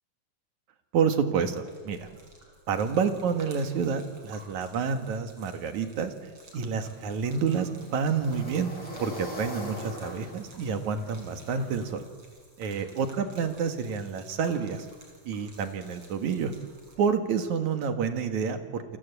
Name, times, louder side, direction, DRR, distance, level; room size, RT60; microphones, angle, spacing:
voice 1, 0.9-2.1 2.7-6.1 6.5-8.7 9.0-12.0 12.6-14.9 15.2-16.5 17.0-19.0, right 6 dB, 65° right, 8 dB, 3.1 m, -29 dB
Gurgling / Liquid, 1.6-17.0, right 2 dB, 45° right, 6.6 m, -54 dB
sound 1, 6.9-11.9, equal, 40° left, 9.0 m, -42 dB
29.0 x 24.5 x 8.3 m, 1.5 s
omnidirectional pair, 3.7 m